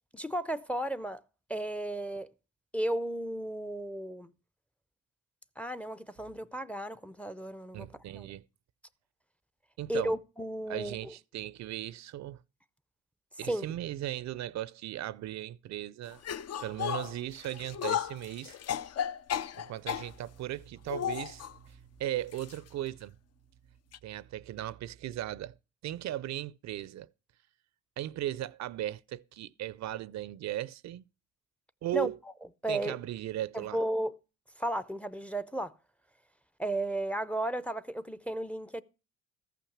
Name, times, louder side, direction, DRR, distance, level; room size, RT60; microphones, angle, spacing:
voice 1, 0.1-1.2 1.5-2.3 2.7-4.3 5.6-7.9 8.1-8.3 9.9-11.1 13.4-13.6 31.9-32.1 32.6-33.0 33.5-34.1 34.6-35.7 36.6-38.8, right 1 dB, 5° left, 0.5 m, -34 dB
voice 2, 7.7-8.4 9.8-10.2 10.7-12.4 13.4-16.2 16.6-18.6 19.6-23.1 24.0-25.5 25.8-27.1 28.0-31.0 31.8-32.2 32.7-33.8, right 13 dB, 65° right, 0.5 m, -37 dB
sound 1, 16.2-20.1 20.9-21.5 22.3-22.6 22.9-23.0 23.9-24.0, left 9 dB, 55° left, 0.6 m, -34 dB
14.0 x 5.8 x 7.1 m
cardioid pair, 90°, 30 cm